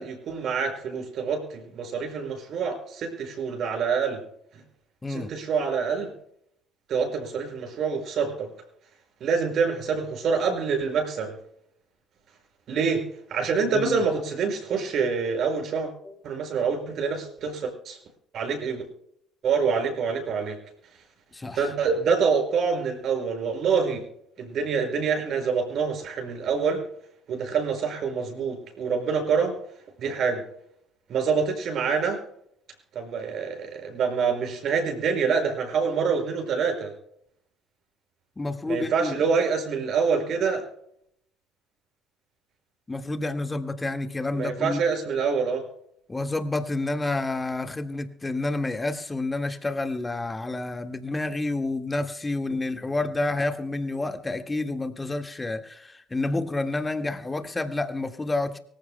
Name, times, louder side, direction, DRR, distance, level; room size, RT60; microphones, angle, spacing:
voice 1, 0.0-4.2 5.1-6.1 6.9-8.5 9.2-11.3 12.7-13.0 13.3-15.9 16.2-18.0 18.3-18.8 19.4-20.6 21.5-24.0 24.4-26.8 27.3-29.5 30.0-30.4 31.1-32.2 32.9-36.9 38.7-40.6 44.3-45.6, right 5 dB, 55° right, 3 dB, 5.6 m, -26 dB
voice 2, 38.4-39.2 42.9-44.8 46.1-58.6, left 2 dB, 20° left, 7 dB, 1.8 m, -29 dB
24.5 x 15.0 x 2.2 m, 0.72 s
hypercardioid pair, 55°, 0 cm